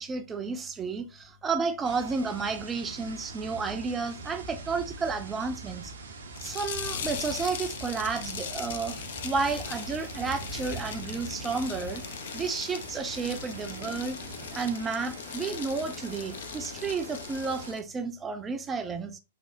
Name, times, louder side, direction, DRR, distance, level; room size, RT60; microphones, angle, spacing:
voice 1, 0.0-5.9 6.4-8.9 9.2-12.0 12.3-14.2 14.5-19.2, right 4 dB, 15° right, 0.4 m, -32 dB
sound 1, 1.8-17.7, right 3 dB, 65° right, 0.5 m, -43 dB
sound 2, 6.3-17.8, left 8 dB, 55° left, 0.3 m, -40 dB
3.2 x 2.1 x 2.5 m
figure-of-eight pair, 105°, 0 cm